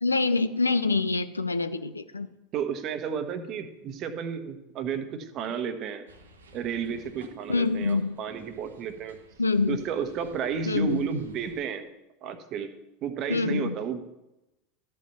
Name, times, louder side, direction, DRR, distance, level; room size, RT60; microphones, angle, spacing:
voice 1, 0.0-2.3 7.5-8.2 9.4-9.8 10.7-11.1 13.3-13.8, left 3 dB, 85° left, 12 dB, 0.5 m, -25 dB
voice 2, 2.5-6.1 6.5-9.2 9.7-11.9 12.2-12.7 13.0-14.0, right 7 dB, 45° right, 9 dB, 1.0 m, -32 dB
sound 1, 6.1-11.6, equal, 80° right, 1.1 m, -55 dB
12.5 x 5.5 x 5.7 m, 0.95 s
figure-of-eight pair, 80°, 0 cm